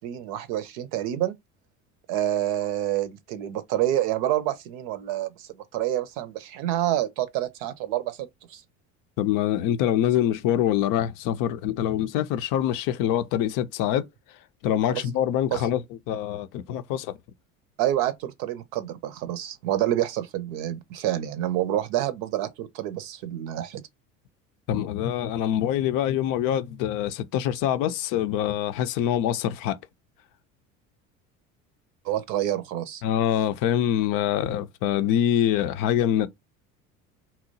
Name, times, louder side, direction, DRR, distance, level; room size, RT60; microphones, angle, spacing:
voice 1, 0.0-1.3 2.1-8.6 14.9-15.0 15.5-15.6 17.8-23.8 32.0-33.0, right 13 dB, 60° right, 0.7 m, -28 dB
voice 2, 9.2-14.1 14.6-17.2 24.7-29.8 33.0-36.3, left 11 dB, 55° left, 0.5 m, -25 dB
2.9 x 2.0 x 3.9 m
hypercardioid pair, 70°, 41 cm